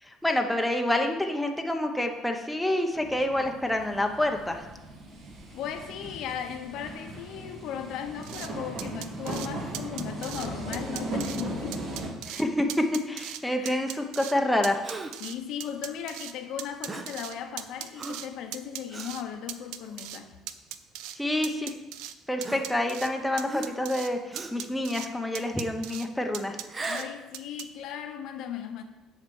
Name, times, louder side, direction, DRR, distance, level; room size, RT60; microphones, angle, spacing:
voice 1, 0.0-4.7 12.3-14.8 21.1-21.7 22.3-26.6, left 1 dB, 5° left, 0.9 m, -28 dB
sound 1, 2.9-12.1, right 2 dB, 50° right, 1.8 m, -38 dB
voice 2, 5.5-11.8 13.6-13.8 15.2-20.3 26.8-28.8, left 9 dB, 70° left, 1.0 m, -37 dB
sound 2, 8.2-8.5 8.8-9.5 9.7-10.5 10.7-11.4 11.7-12.4 12.7-13.4 13.7-14.3 14.6-16.3 16.6-18.3 18.5-19.2 19.5-20.2 20.5-21.2 21.4-22.1 22.4-23.1 23.4-24.1 24.4-25.1 25.3-26.1 26.3-27.0 27.3-27.6, right 12 dB, 85° right, 0.5 m, -38 dB
Gasp, 14.8-15.3 16.9-17.2 18.0-18.3 18.9-19.2 19.9-20.1 21.1-21.2 22.4-23.1 23.5-23.9 24.3-24.7 26.6-27.2, right 3 dB, 25° right, 0.8 m, -37 dB
7.8 x 5.0 x 7.0 m
cardioid pair, 115°, 0 cm